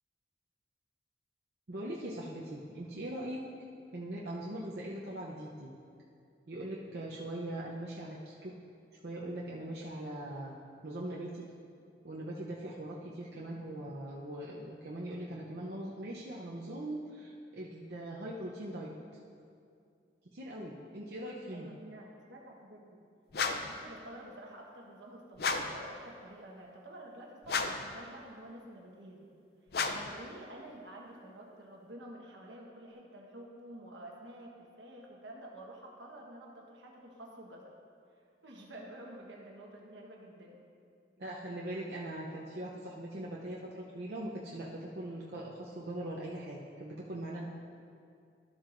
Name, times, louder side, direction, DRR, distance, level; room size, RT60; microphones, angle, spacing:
voice 1, 1.7-3.4 3.9-5.7 6.5-8.5 8.9-10.6 10.8-11.5 12.0-18.9 20.3-21.7 41.2-47.5, right 1 dB, 60° right, -4 dB, 0.7 m, -41 dB
voice 2, 13.3-13.7 21.5-23.0 23.6-29.3 29.9-37.7 38.4-40.6, right 1 dB, 90° right, -1 dB, 1.2 m, -49 dB
sound 1, 23.3-23.8 25.4-25.8 27.4-27.9 29.7-30.2, left 4 dB, 55° left, 0.5 m, -33 dB
13.5 x 7.4 x 2.6 m, 2.4 s
head